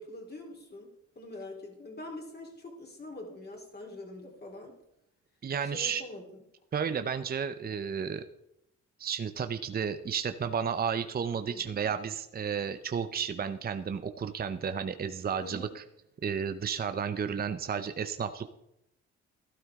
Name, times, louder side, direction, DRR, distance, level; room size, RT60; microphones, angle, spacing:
voice 1, 0.0-4.8 5.6-6.4 11.5-11.8 15.4-15.7, left 2 dB, 35° left, 0 dB, 3.9 m, -44 dB
voice 2, 5.4-6.0 6.7-8.2 9.0-15.8 16.2-18.5, right 7 dB, 30° right, 10 dB, 0.7 m, -32 dB
12.5 x 11.5 x 3.7 m, 0.83 s
cardioid pair, 90°, 30 cm